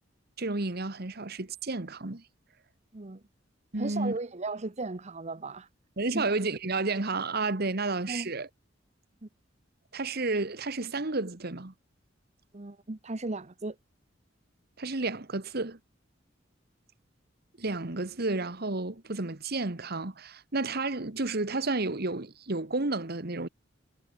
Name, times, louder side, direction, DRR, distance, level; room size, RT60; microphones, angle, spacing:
voice 1, 0.4-2.2 3.7-4.2 6.0-8.5 9.9-11.7 14.8-15.8 17.6-23.5, right 3 dB, 55° right, 1.6 m, -31 dB
voice 2, 3.8-5.7 6.1-6.3 8.1-8.3 9.2-9.3 12.5-13.8, right 2 dB, 35° right, 1.0 m, -36 dB
head